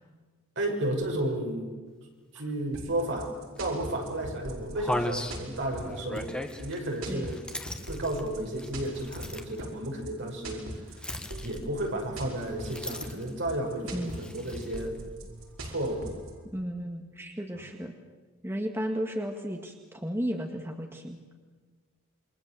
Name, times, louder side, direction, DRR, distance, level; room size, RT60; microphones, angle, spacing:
voice 1, 0.6-1.7 2.3-6.3 6.6-7.4 7.9-10.7 10.9-11.1 11.4-15.0 15.6-16.2 17.5-17.6, right 1 dB, 60° right, 1 dB, 6.0 m, -32 dB
sound 1, 2.7-16.3, right 1 dB, 75° right, 5.1 m, -41 dB
sound 2, 3.6-3.7 4.2-4.3 4.7-9.6 11.0-11.9 12.6-13.4 14.1-14.9, left 1 dB, 5° left, 1.8 m, -37 dB
voice 2, 16.5-17.9 18.4-21.2, equal, 10° right, 3 dB, 1.9 m, -34 dB
28.0 x 23.5 x 7.7 m, 1.4 s
head